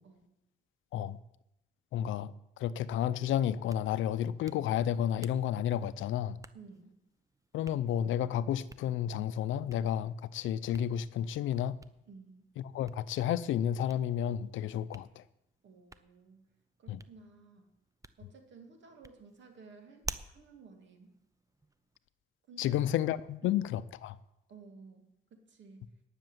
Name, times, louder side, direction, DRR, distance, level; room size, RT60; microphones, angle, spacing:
voice 1, 1.9-6.4 7.5-11.8 12.7-15.2 16.9-17.0 22.6-24.2, left 10 dB, 80° left, 0.6 m, -31 dB
Hands, 3.4-22.0, right 3 dB, 15° right, 0.6 m, -52 dB
voice 2, 6.5-7.0 12.1-12.5 15.6-16.5 16.8-17.7 18.2-20.1 20.3-21.1 22.5-22.9 23.4-23.7 24.5-25.9, right 4 dB, 65° right, 2.6 m, -54 dB
10.5 x 6.8 x 9.2 m
cardioid pair, 90°, 20 cm